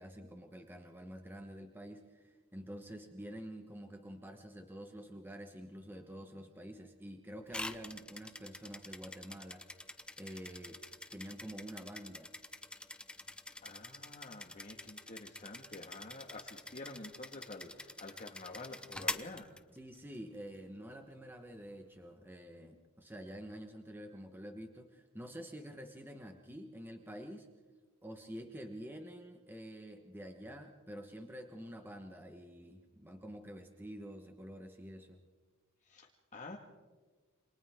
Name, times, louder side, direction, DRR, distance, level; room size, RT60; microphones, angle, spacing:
voice 1, 0.0-9.8 10.2-10.8 11.1-12.3 19.7-27.5 28.0-35.2, equal, 10° right, 4 dB, 1.2 m, -48 dB
sound 1, 7.5-20.2, left 2 dB, 5° left, 0.8 m, -46 dB
voice 2, 13.6-19.5 35.8-36.6, left 2 dB, 35° left, 0 dB, 1.7 m, -49 dB
28.5 x 26.5 x 3.6 m, 1.4 s
head